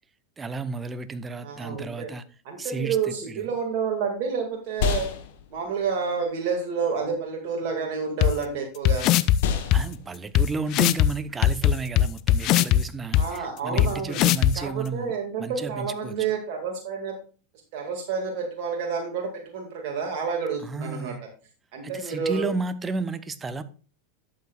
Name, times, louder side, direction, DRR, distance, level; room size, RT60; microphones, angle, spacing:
voice 1, 0.4-2.2 2.6-3.5 9.7-15.1 15.4-16.1 20.6-21.2 21.8-23.6, right 4 dB, 20° right, 0.8 m, -32 dB
voice 2, 1.4-2.1 2.5-5.1 5.5-9.1 13.2-14.2 14.5-17.1 17.7-21.1 21.7-22.5, right 6 dB, 55° right, 2.1 m, -29 dB
sound 1, 3.6-13.1, left 7 dB, 65° left, 1.4 m, -34 dB
sound 2, 8.2-8.3 8.8-9.4 9.7-9.8 10.3-10.4 10.7-11.1 11.4-12.8 13.1-13.2 13.8-13.9 14.1-14.5, left 13 dB, 50° left, 0.5 m, -18 dB
11.5 x 8.3 x 2.4 m
hypercardioid pair, 95°, 0 cm